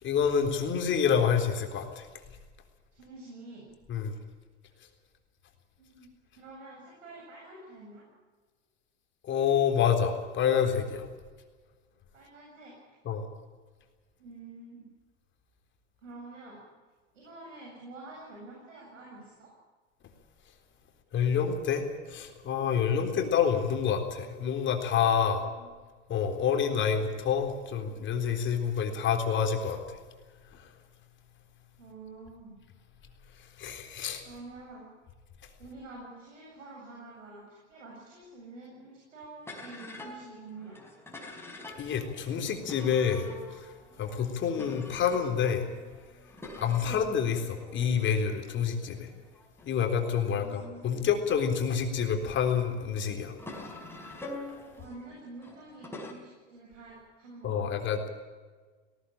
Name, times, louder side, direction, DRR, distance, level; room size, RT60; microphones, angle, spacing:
voice 1, 0.0-2.1 3.9-4.1 9.2-11.1 13.0-13.2 21.1-25.4 26.1-30.0 30.6-30.7 33.6-34.2 41.8-43.7 44.0-45.7 46.6-49.1 49.7-53.3 54.0-54.1 57.4-58.1, left 7 dB, 30° left, 5 dB, 3.9 m, -28 dB
voice 2, 2.9-3.7 5.8-8.1 12.1-13.0 14.2-14.9 16.0-16.6 17.1-19.5 25.6-25.7 31.8-32.6 34.2-34.9 35.6-40.8 46.8-47.0 50.3-51.0 54.7-57.8, right 2 dB, 90° right, -2 dB, 7.8 m, -48 dB
sound 1, 39.4-52.0 52.7-56.1, left 2 dB, 5° left, 4.7 m, -46 dB
18.5 x 18.5 x 8.8 m, 1.4 s
hypercardioid pair, 120°, 37 cm